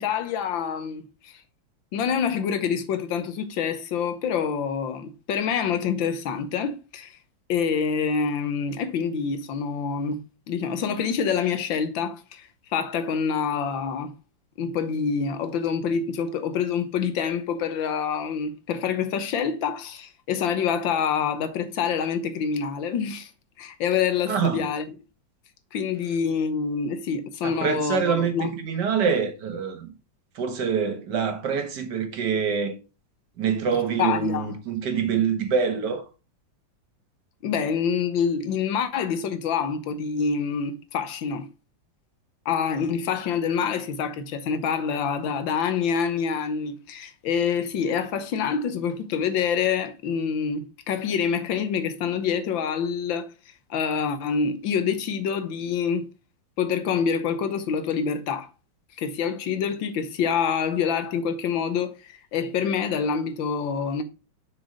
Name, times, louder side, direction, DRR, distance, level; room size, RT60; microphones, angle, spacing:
voice 1, 0.0-1.3 1.9-7.2 7.5-10.2 10.5-14.1 14.6-23.3 23.6-24.8 25.7-28.5 34.0-34.5 37.4-41.5 42.5-53.3 53.7-56.1 56.6-58.5 59.0-64.0, left 6 dB, 80° left, 1.7 m, -26 dB
voice 2, 24.3-24.7 27.4-29.9 30.4-32.8 33.4-36.1, right 6 dB, 65° right, 1.8 m, -25 dB
6.3 x 4.9 x 5.0 m
omnidirectional pair, 2.1 m